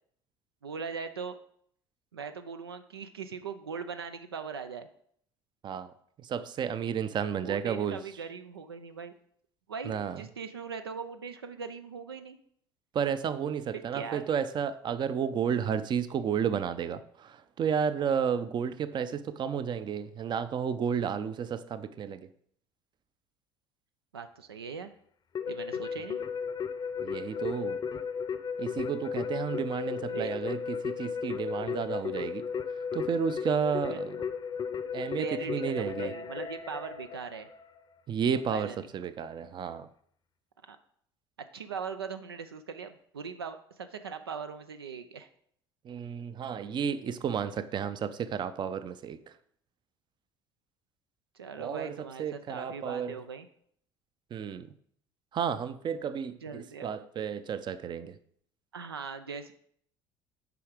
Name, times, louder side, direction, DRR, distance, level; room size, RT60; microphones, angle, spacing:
voice 1, 0.6-1.4 2.1-4.9 7.4-9.1 9.7-12.4 13.7-14.2 24.1-24.9 25.5-26.2 30.0-30.4 33.9-34.0 35.1-37.5 38.5-38.9 40.7-40.8 41.5-45.3 51.3-53.5 56.4-56.9 58.7-59.5, right 6 dB, 85° right, 9 dB, 0.4 m, -40 dB
voice 2, 6.3-8.0 9.9-10.2 12.9-22.2 27.0-27.8 28.6-32.4 32.9-34.2 34.9-36.1 38.1-39.9 45.8-49.2 51.6-53.2 54.3-54.7 55.3-58.1, right 7 dB, 40° right, 13 dB, 0.5 m, -32 dB
Keyboard (musical), 25.3-37.8, left 6 dB, 35° left, 0.6 m, -35 dB
6.9 x 4.8 x 4.9 m, 0.65 s
figure-of-eight pair, 60°, 13 cm